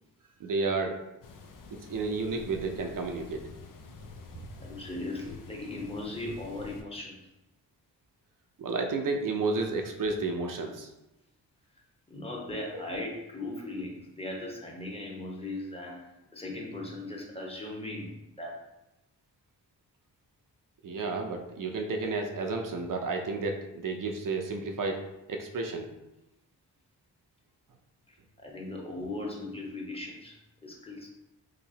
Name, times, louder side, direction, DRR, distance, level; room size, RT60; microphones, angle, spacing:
voice 1, 0.4-1.0 1.7-3.4 8.6-10.9 20.8-25.0 25.3-25.9, right 3 dB, 50° right, 3 dB, 0.6 m, -31 dB
sound 1, 1.2-6.8, left 3 dB, 50° left, 0.6 m, -48 dB
voice 2, 4.6-7.3 12.1-18.6 28.1-31.1, left 2 dB, 15° left, -1 dB, 0.9 m, -38 dB
3.0 x 2.9 x 2.7 m, 0.91 s
cardioid pair, 50°, 42 cm